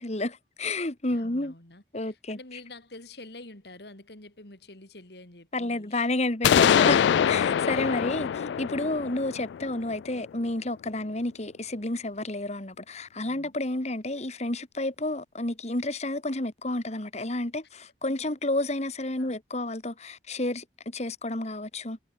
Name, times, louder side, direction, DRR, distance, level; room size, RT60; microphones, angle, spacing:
voice 1, 0.0-1.5 1.9-2.4 5.5-22.0, left 2 dB, 40° left, 1.9 m, -30 dB
voice 2, 1.1-6.1 7.6-8.1 13.2-13.6 18.1-18.4 19.2-19.3, left 2 dB, 65° left, 3.8 m, -48 dB
sound 1, 6.4-10.2, left 8 dB, 80° left, 0.3 m, -24 dB
head